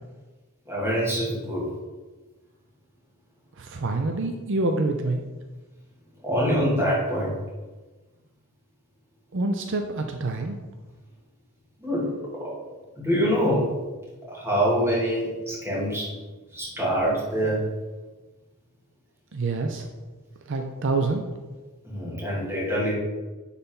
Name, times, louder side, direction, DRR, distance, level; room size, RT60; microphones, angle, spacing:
voice 1, 0.7-1.7 6.2-7.4 11.8-12.5 13.0-13.7 14.3-16.1 16.5-17.6 21.8-22.9, equal, 10° right, -7 dB, 2.2 m, -25 dB
voice 2, 3.6-5.2 9.3-10.6 19.3-19.9 20.5-21.2, right 2 dB, 55° right, 4 dB, 0.5 m, -26 dB
9.8 x 4.1 x 3.8 m, 1.2 s
head